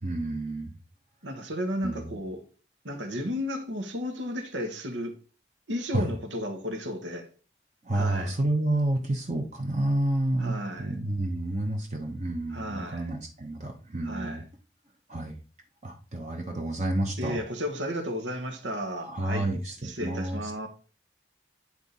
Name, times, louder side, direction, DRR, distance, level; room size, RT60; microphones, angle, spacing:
voice 1, 0.0-0.7 1.8-2.2 5.9-6.1 7.8-14.4 15.1-15.4 15.8-17.4 18.9-20.5, right 1 dB, 40° right, 1.0 m, -30 dB
voice 2, 1.2-2.4 2.8-5.1 5.7-7.3 7.9-8.3 10.4-11.0 12.5-13.1 14.0-14.4 17.2-19.5 19.8-20.7, equal, 85° right, 1.4 m, -33 dB
9.9 x 3.7 x 4.1 m
head